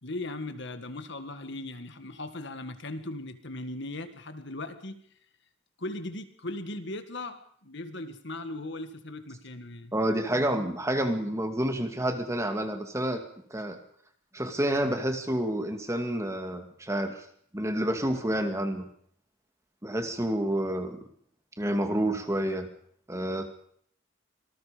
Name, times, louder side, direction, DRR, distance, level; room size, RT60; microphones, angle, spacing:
voice 1, 0.0-5.0 5.8-9.9, left 2 dB, 55° left, 9 dB, 1.9 m, -38 dB
voice 2, 9.9-13.2 13.5-13.8 14.3-17.2 17.5-18.9 19.8-21.0 21.6-22.7 23.1-23.5, right 1 dB, 15° right, 6 dB, 2.2 m, -29 dB
26.0 x 19.5 x 5.2 m, 0.63 s
head